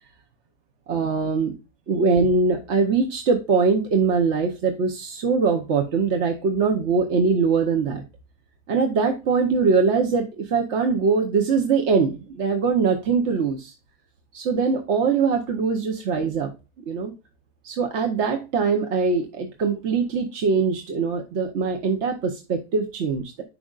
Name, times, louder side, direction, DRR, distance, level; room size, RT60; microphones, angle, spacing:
voice 1, 0.9-1.6 1.9-8.0 8.7-13.7 14.3-16.5 16.9-17.1 17.6-23.4, right 5 dB, 55° right, 4 dB, 1.0 m, -22 dB
11.0 x 5.0 x 2.4 m, 0.29 s
omnidirectional pair, 1.7 m